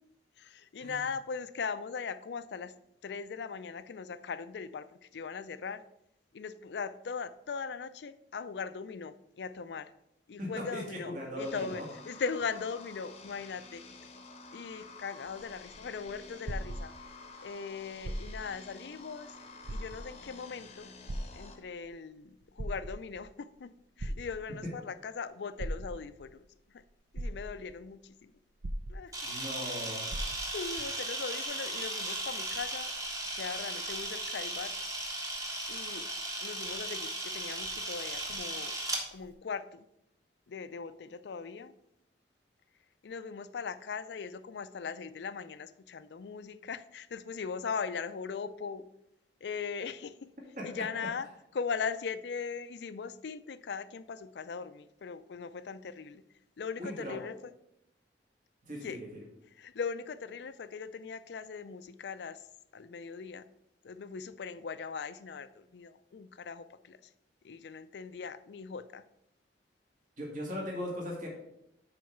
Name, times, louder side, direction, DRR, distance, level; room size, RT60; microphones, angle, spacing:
voice 1, 0.4-2.7 3.0-5.8 6.3-9.9 10.3-13.8 14.5-16.9 17.4-19.3 19.7-20.9 21.3-23.7 24.0-26.8 27.1-28.3 28.9-29.1 30.5-32.9 33.3-34.7 35.7-36.1 36.4-38.7 39.1-39.9 40.5-41.7 43.0-48.8 49.4-50.3 50.6-51.3 51.5-56.2 56.6-57.5 58.8-59.0 59.5-62.4 62.7-63.4 63.8-67.0 67.4-69.0, left 5 dB, 70° left, 13 dB, 0.4 m, -39 dB
voice 2, 10.4-11.8 29.2-30.1 50.6-50.7 56.8-57.2 58.6-59.2 70.2-71.3, equal, 50° right, -2 dB, 1.9 m, -39 dB
sound 1, 11.4-21.6, left 3 dB, 35° left, 0.8 m, -50 dB
sound 2, 15.3-17.3 17.9-18.6 19.0-19.1 19.6-20.3 21.1-21.9 22.4-23.3 24.0-24.7 25.6-26.3 26.8-26.9 27.1-27.9 28.6-29.4 29.7-29.8 30.1-30.7 31.4-31.5, right 1 dB, 85° right, 0.7 m, -39 dB
Camera, 29.1-39.0, right 1 dB, 20° right, 1.3 m, -36 dB
6.2 x 4.6 x 5.8 m, 0.81 s
head